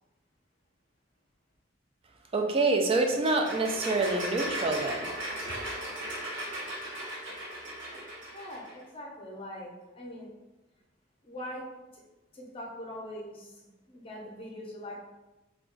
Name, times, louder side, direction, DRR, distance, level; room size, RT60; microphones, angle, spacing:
voice 1, 2.3-5.1, right 3 dB, 30° right, 3 dB, 0.3 m, -26 dB
sound 1, 3.0-8.7, right 1 dB, 70° right, 1.3 m, -37 dB
voice 2, 8.3-10.3 11.2-11.7 11.9-12.0 12.3-13.6 13.9-15.0, left 1 dB, 30° left, -2 dB, 0.6 m, -42 dB
2.4 x 2.3 x 3.7 m, 1.1 s
head